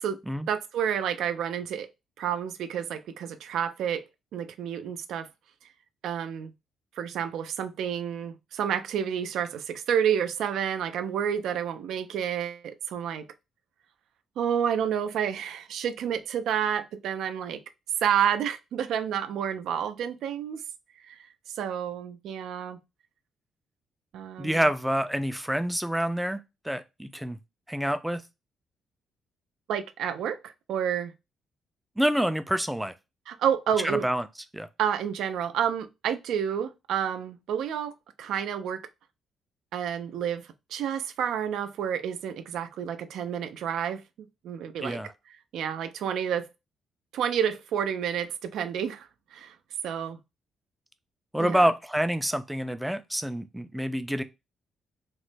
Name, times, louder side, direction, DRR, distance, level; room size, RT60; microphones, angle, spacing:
voice 1, 0.5-1.9 2.2-4.0 4.3-5.3 6.0-6.5 7.0-13.2 14.4-17.6 18.0-20.6 21.1-21.2 21.5-22.8 24.1-24.6 29.7-31.1 33.3-34.0 34.8-37.9 38.2-38.8 39.7-40.4 40.7-44.0 44.4-45.0 45.5-46.5 47.1-49.5 49.8-50.2 51.4-51.6, right 8 dB, 80° right, 0.4 m, -29 dB
voice 2, 24.4-27.4 27.7-28.2 32.0-32.9 33.8-34.2 34.5-34.7 44.8-45.1 51.3-54.2, equal, 5° right, 0.4 m, -27 dB
3.0 x 2.0 x 3.2 m
cardioid pair, 90°, 0 cm